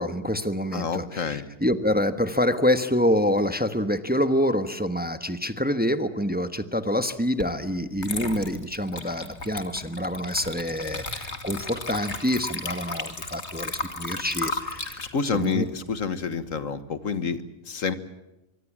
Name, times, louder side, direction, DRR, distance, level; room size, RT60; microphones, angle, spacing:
voice 1, 0.0-15.0 15.3-15.6, equal, 10° right, 9 dB, 1.2 m, -26 dB
voice 2, 0.7-1.5 14.5-14.6 15.0-17.9, left 5 dB, 85° left, 12 dB, 1.8 m, -29 dB
Water / Liquid, 7.4-7.6 8.0-16.5, left 3 dB, 55° left, 2.8 m, -35 dB
24.5 x 24.0 x 7.4 m, 0.96 s
omnidirectional pair, 1.3 m